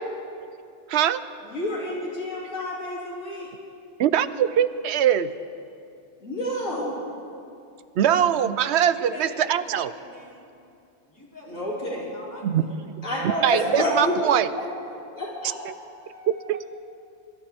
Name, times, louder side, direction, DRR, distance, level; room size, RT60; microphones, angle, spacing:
voice 1, 0.9-1.2 4.0-5.3 7.9-9.9 12.4-12.7 13.4-14.5 15.6-15.7 16.3-16.7, right 10 dB, 70° right, 13 dB, 0.8 m, -22 dB
voice 2, 1.4-3.5 6.2-7.0 11.5-12.0 12.6-12.8 13.0-14.1 14.6-14.7 15.1-15.5, left 1 dB, 90° left, -6 dB, 3.2 m, -28 dB
voice 3, 8.9-10.4 11.1-12.9 15.1-15.2 15.7-16.7, equal, 15° left, -6 dB, 3.2 m, -43 dB
25.5 x 13.0 x 3.5 m, 2.5 s
omnidirectional pair, 1.3 m